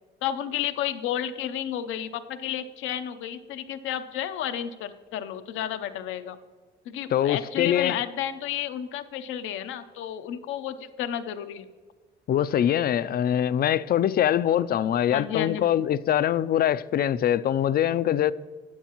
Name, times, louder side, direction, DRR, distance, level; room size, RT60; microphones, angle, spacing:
voice 1, 0.2-6.4 6.9-11.7 15.1-15.7, left 10 dB, 90° left, 0.6 m, -32 dB
voice 2, 7.1-8.0 12.3-18.3, left 10 dB, 50° left, 0.4 m, -23 dB
12.0 x 9.3 x 3.0 m
cardioid pair, 90°, 20 cm